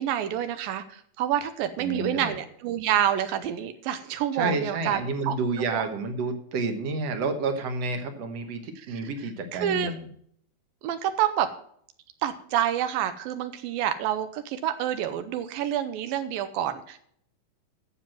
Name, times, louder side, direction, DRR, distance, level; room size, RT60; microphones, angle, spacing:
voice 1, 0.0-5.0 5.2-5.4 5.7-5.8 8.9-9.0 9.5-9.9 10.8-11.5 12.2-17.0, right 10 dB, 80° right, 10 dB, 2.5 m, -28 dB
voice 2, 1.8-2.4 4.3-10.1, right 3 dB, 60° right, 7 dB, 1.8 m, -30 dB
9.7 x 7.4 x 7.6 m, 0.64 s
omnidirectional pair, 4.1 m